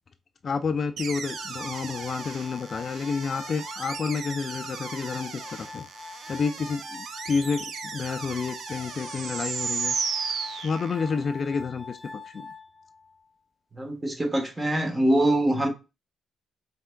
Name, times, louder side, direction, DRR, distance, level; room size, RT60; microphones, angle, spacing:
voice 1, 0.4-5.8 6.3-7.7 7.9-9.9 10.3-12.0 12.3-12.5, left 5 dB, 45° left, 0.3 m, -30 dB
sound 1, 1.0-11.3, right 6 dB, 60° right, 0.5 m, -35 dB
Glass, 1.2-13.3, left 3 dB, 15° left, 0.8 m, -43 dB
voice 2, 13.7-15.7, right 1 dB, 20° right, 1.2 m, -24 dB
4.3 x 3.4 x 2.2 m
cardioid pair, 90°, 0 cm